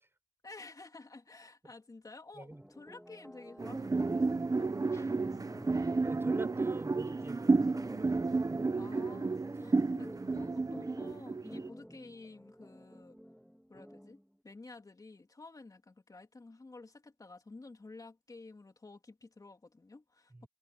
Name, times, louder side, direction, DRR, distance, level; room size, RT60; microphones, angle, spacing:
voice 1, 0.4-4.7 8.8-13.2 13.7-20.5, left 3 dB, 80° left, 3.2 m, -52 dB
sound 1, 2.5-14.3, equal, ahead, 3.0 m, -52 dB
sound 2, 3.6-11.7, right 3 dB, 75° right, 1.1 m, -31 dB
Dist Chr G up pm, 4.9-7.0, left 2 dB, 55° left, 3.2 m, -58 dB
voice 2, 6.0-9.0 20.3-20.5, right 2 dB, 40° right, 7.3 m, -46 dB
wide cardioid pair, 50°, 6 cm